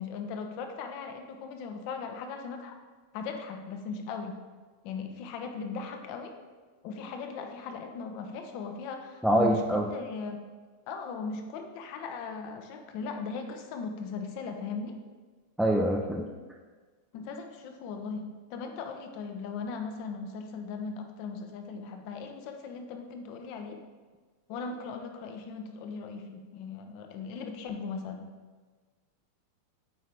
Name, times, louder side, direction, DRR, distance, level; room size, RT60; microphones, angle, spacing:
voice 1, 0.0-2.8 3.1-4.4 4.8-6.4 6.8-10.4 10.9-15.0 17.1-23.8 24.5-28.3, left 5 dB, 50° left, 5 dB, 0.8 m, -38 dB
voice 2, 9.2-9.9 15.6-16.3, right 1 dB, ahead, -1 dB, 0.5 m, -25 dB
9.0 x 3.9 x 3.4 m, 1.4 s
supercardioid pair, 135°, 0 cm